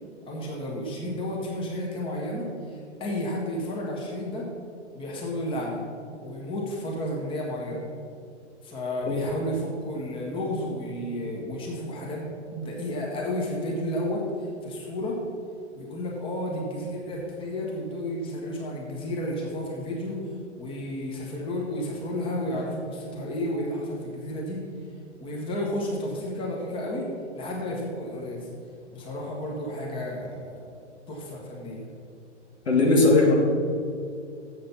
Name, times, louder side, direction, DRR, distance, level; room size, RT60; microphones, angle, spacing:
voice 1, 0.3-4.5 4.9-5.8 6.2-7.9 8.6-12.2 12.5-15.2 15.7-20.2 20.6-24.6 25.2-27.1 27.3-28.5 28.9-30.7 31.1-31.8, left 1 dB, 15° left, -3 dB, 1.5 m, -32 dB
voice 2, 32.7-33.4, left 2 dB, 65° left, 0 dB, 2.0 m, -18 dB
7.7 x 7.6 x 6.0 m, 2.4 s
figure-of-eight pair, 110°, 35 cm